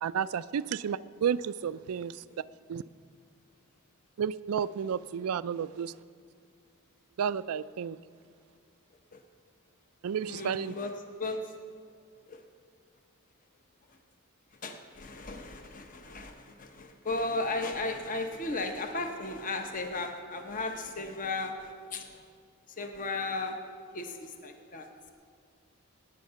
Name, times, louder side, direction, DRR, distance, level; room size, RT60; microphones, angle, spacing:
voice 1, 0.0-2.2 2.7-2.8 4.2-5.9 7.2-8.0 10.0-10.7, right 7 dB, 80° right, 17 dB, 0.4 m, -31 dB
voice 2, 10.2-10.9 11.2-11.5 12.3-12.4 13.9-14.0 14.5-22.2 22.7-23.6 23.9-25.1, left 2 dB, 35° left, 5 dB, 0.9 m, -35 dB
17.5 x 9.7 x 5.7 m, 2.2 s
head